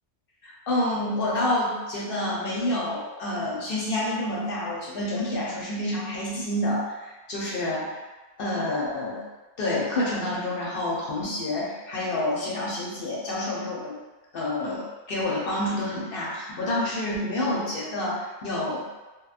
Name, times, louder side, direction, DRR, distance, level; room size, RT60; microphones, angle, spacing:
voice 1, 0.4-8.0 8.4-9.2 9.6-13.9 14.3-18.9, left 1 dB, 60° left, -5 dB, 0.8 m, -28 dB
2.9 x 2.1 x 2.4 m, 1.2 s
omnidirectional pair, 1.2 m